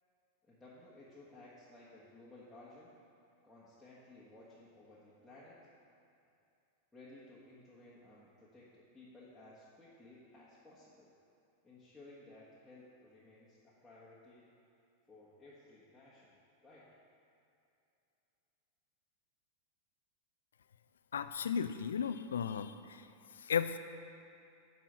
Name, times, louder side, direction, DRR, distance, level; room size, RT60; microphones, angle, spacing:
voice 1, 0.4-2.9 3.4-5.6 6.9-11.1 11.6-14.5 15.1-16.3 16.6-16.9, left 2 dB, 5° left, -10 dB, 1.5 m, -57 dB
voice 2, 21.1-23.1 23.4-23.8, left 7 dB, 65° left, 11 dB, 0.4 m, -35 dB
11.0 x 4.2 x 6.0 m, 2.7 s
figure-of-eight pair, 90°, 0 cm